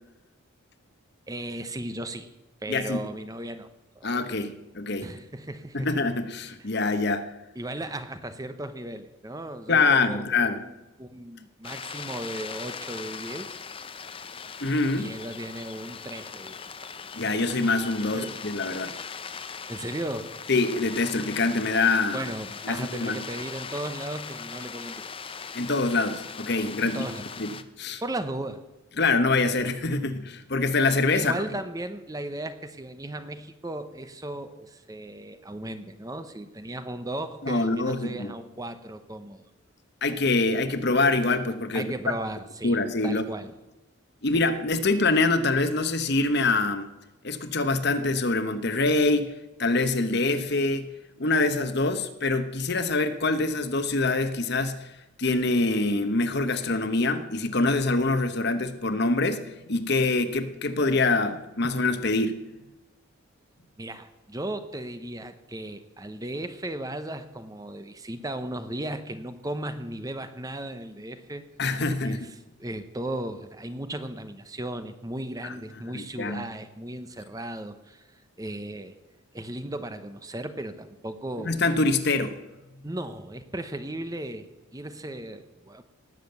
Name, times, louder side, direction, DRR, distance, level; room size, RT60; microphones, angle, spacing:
voice 1, 1.3-2.3 2.6-3.7 3.9-4.1 5.0-5.9 7.5-13.5 14.9-16.6 18.1-18.4 19.7-20.3 22.1-25.1 26.8-27.3 28.0-28.6 31.1-39.5 41.7-42.8 43.0-43.5 63.8-71.4 71.9-72.3 72.6-78.9 79.3-81.6 82.8-85.8, right 1 dB, 15° right, 10 dB, 0.7 m, -36 dB
voice 2, 2.7-3.0 4.0-5.1 5.7-7.3 9.7-10.6 14.6-15.1 17.1-18.9 20.5-22.3 22.6-23.2 25.5-27.1 27.4-27.5 27.8-28.0 29.0-31.3 37.4-38.3 40.0-41.9 42.6-43.3 44.2-46.9 47.2-49.3 49.6-50.9 51.2-54.8 55.2-62.4 71.6-72.3 75.4-75.5 75.9-76.4 81.4-82.4, left 3 dB, 50° left, 10 dB, 1.0 m, -25 dB
sound 1, 11.6-27.6, left 6 dB, 25° left, 0.6 m, -40 dB
18.5 x 7.4 x 8.0 m, 1.0 s
head